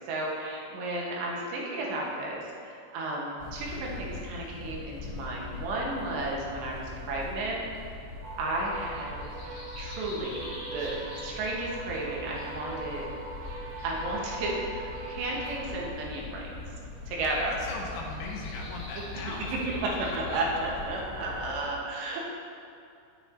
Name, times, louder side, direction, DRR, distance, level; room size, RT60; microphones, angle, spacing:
voice 1, 0.1-7.7 8.4-9.2 9.8-13.1 13.8-16.5 17.1-17.5 19.6-22.3, right 2 dB, 80° right, -3 dB, 3.4 m, -33 dB
sound 1, 3.4-21.6, left 2 dB, 45° left, 1.7 m, -42 dB
sound 2, 8.2-15.9, right 3 dB, 60° right, 1.7 m, -41 dB
voice 2, 17.5-19.6, left 3 dB, 75° left, -3 dB, 1.8 m, -39 dB
9.8 x 9.3 x 2.8 m, 2.5 s
omnidirectional pair, 4.9 m